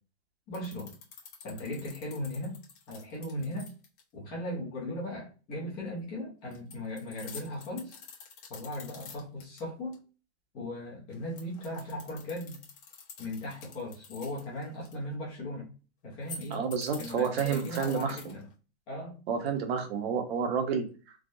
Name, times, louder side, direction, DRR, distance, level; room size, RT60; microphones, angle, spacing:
sound 1, 0.5-4.0 6.5-9.6 9.9-10.0 11.1-14.9 16.1-18.5, left 5 dB, 50° left, 1.0 m, -47 dB
voice 1, 0.5-0.9 1.4-2.6 2.9-3.7 4.1-7.9 8.5-10.0 10.5-12.6 13.2-15.7 16.0-16.6 17.0-18.5 18.9-19.2, left 1 dB, 15° left, -4 dB, 0.5 m, -38 dB
voice 2, 16.5-18.3 19.3-21.3, right 6 dB, 65° right, 4 dB, 0.9 m, -30 dB
3.4 x 2.0 x 2.5 m, 0.34 s
supercardioid pair, 175°, 33 cm